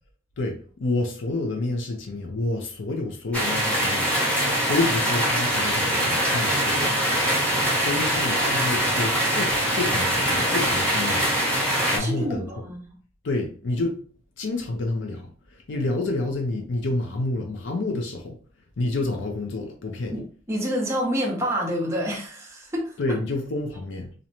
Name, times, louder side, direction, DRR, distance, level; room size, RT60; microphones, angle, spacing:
voice 1, 0.4-7.0 7.8-11.4 11.9-12.4 13.2-14.0 14.4-18.4 18.8-20.2 23.0-24.1, left 2 dB, 70° left, 0.5 m, -29 dB
sound 1, 3.3-12.0, right 1 dB, 5° left, 1.0 m, -23 dB
voice 2, 12.0-12.8 20.1-20.2 20.5-23.0, equal, 15° right, 0.7 m, -27 dB
2.5 x 2.1 x 2.9 m
head